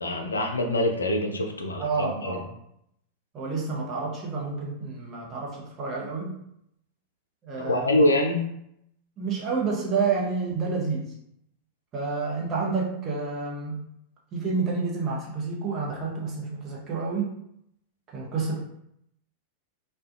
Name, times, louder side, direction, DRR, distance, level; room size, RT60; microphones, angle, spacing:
voice 1, 0.0-2.4 7.6-8.4, left 1 dB, 75° left, 3 dB, 0.3 m, -25 dB
voice 2, 1.8-2.5 3.3-6.4 7.4-8.1 9.2-11.1 11.9-13.8 14.3-17.4 18.1-18.6, right 4 dB, 30° right, -3 dB, 0.7 m, -29 dB
2.3 x 2.1 x 2.5 m, 0.75 s
figure-of-eight pair, 90°, 0 cm